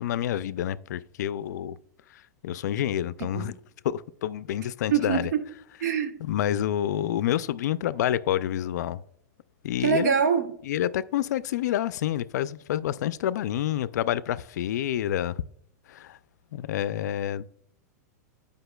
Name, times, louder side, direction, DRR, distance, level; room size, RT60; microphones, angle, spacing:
voice 1, 0.0-1.8 2.1-3.5 3.8-5.3 6.2-9.0 9.6-10.1 10.6-15.4 15.9-16.2 16.5-17.4, left 11 dB, 75° left, 0.3 m, -28 dB
voice 2, 4.9-5.4 5.8-6.2 9.8-10.5, right 7 dB, 75° right, 1.0 m, -24 dB
10.0 x 5.1 x 2.3 m
supercardioid pair, 150°, 9 cm